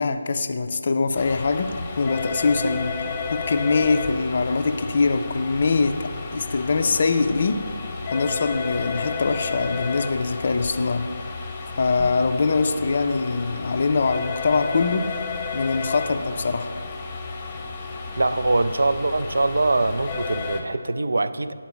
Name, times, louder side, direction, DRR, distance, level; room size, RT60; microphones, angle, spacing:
voice 1, 0.0-2.9 3.3-7.6 8.1-11.1 11.8-15.1 15.5-16.7, left 4 dB, 45° left, 8 dB, 0.4 m, -23 dB
sound 1, 1.1-20.6, left 4 dB, 20° left, 0.8 m, -32 dB
voice 2, 18.2-21.5, right 2 dB, 65° right, 12 dB, 0.3 m, -23 dB
11.5 x 4.2 x 3.1 m, 2.1 s
figure-of-eight pair, 155°, 0 cm